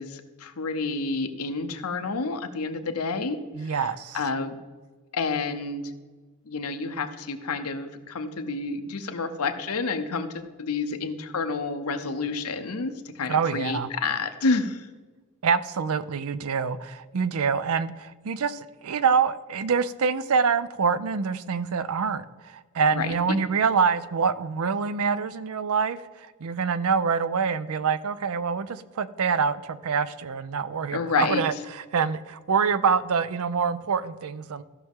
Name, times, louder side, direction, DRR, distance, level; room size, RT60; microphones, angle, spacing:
voice 1, 0.0-4.6 5.1-5.9 6.5-14.9 22.9-23.4 30.9-31.4, left 4 dB, 85° left, 9 dB, 0.8 m, -29 dB
voice 2, 3.6-4.2 13.3-13.9 15.4-26.0 26.4-31.5 31.9-34.6, right 6 dB, 70° right, 15 dB, 0.5 m, -25 dB
15.0 x 6.0 x 3.6 m, 1.3 s
head